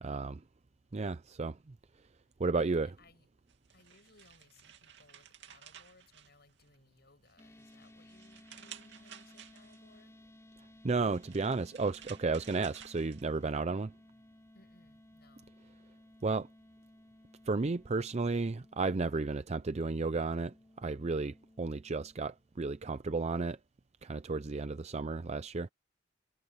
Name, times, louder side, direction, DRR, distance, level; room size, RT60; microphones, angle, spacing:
voice 1, 0.0-0.4 0.9-1.6 2.4-2.9 10.8-13.9 16.2-16.5 17.5-23.6 24.0-25.7, right 3 dB, 35° right, 0.5 m, -33 dB
voice 2, 2.6-3.3 3.7-10.2 14.5-15.5, left 2 dB, 55° left, 7.6 m, -64 dB
sound 1, 3.5-6.9 7.3-10.0 10.9-13.6, right 9 dB, 65° right, 2.6 m, -54 dB
sound 2, 7.4-22.9, left 1 dB, 15° left, 4.2 m, -59 dB
head